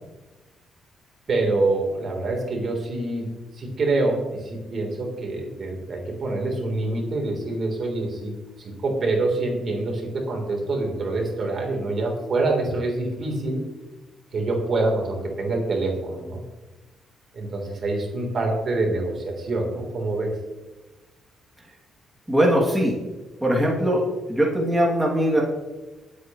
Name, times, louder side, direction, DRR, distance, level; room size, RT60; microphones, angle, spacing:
voice 1, 1.3-3.3 3.6-8.3 8.6-13.6 14.3-16.4 17.3-20.3, right 2 dB, 50° right, 0 dB, 3.7 m, -26 dB
voice 2, 22.3-23.0 23.4-24.0 24.3-25.4, equal, 10° right, -3 dB, 2.8 m, -20 dB
18.5 x 8.5 x 3.2 m, 1.1 s
cardioid pair, 90°, 0 cm